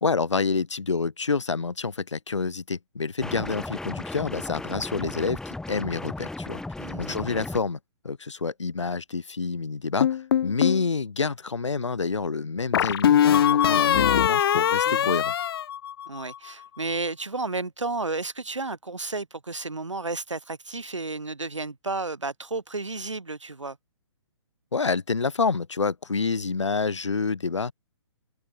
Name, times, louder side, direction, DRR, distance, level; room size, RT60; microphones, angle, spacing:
voice 1, 0.0-6.6 7.0-7.8 8.0-10.1 10.4-15.3 24.7-27.7, left 4 dB, 80° left, 3.2 m, -28 dB
sound 1, 3.2-7.6, left 2 dB, 5° left, 3.3 m, -35 dB
voice 2, 6.8-7.2 14.8-15.2 16.1-23.8, right 3 dB, 85° right, 7.6 m, -32 dB
sound 2, 10.0-10.8 12.7-16.3, left 10 dB, 55° left, 0.4 m, -21 dB
figure-of-eight pair, 130°, 15 cm